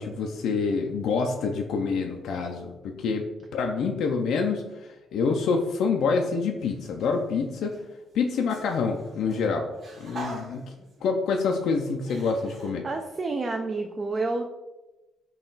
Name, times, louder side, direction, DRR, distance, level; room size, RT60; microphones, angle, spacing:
voice 1, 0.0-3.2 3.5-7.8 8.1-9.7 10.0-10.6 11.0-12.9, left 5 dB, 75° left, 2 dB, 0.3 m, -27 dB
sound 1, 6.6-7.2 7.6-12.7, right 1 dB, 55° right, 1.2 m, -44 dB
voice 2, 12.8-14.4, right 3 dB, 35° right, 4 dB, 0.3 m, -29 dB
3.8 x 2.3 x 3.9 m, 1.1 s
cardioid pair, 90°, 0 cm